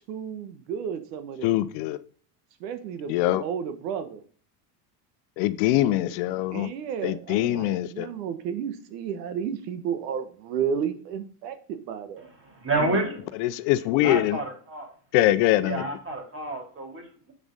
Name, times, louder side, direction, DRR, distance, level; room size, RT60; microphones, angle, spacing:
voice 1, 0.1-1.6 2.6-4.2 5.7-6.1 6.5-12.3, right 7 dB, 85° right, 1.3 m, -32 dB
voice 2, 1.4-2.0 3.1-3.4 5.4-6.7 7.0-8.1 13.4-14.4 15.1-15.8, left 15 dB, 65° left, 0.8 m, -23 dB
voice 3, 12.4-13.3 14.0-14.9 15.6-17.3, right 2 dB, 25° right, 3.7 m, -30 dB
7.9 x 5.9 x 4.0 m
supercardioid pair, 95°, 47 cm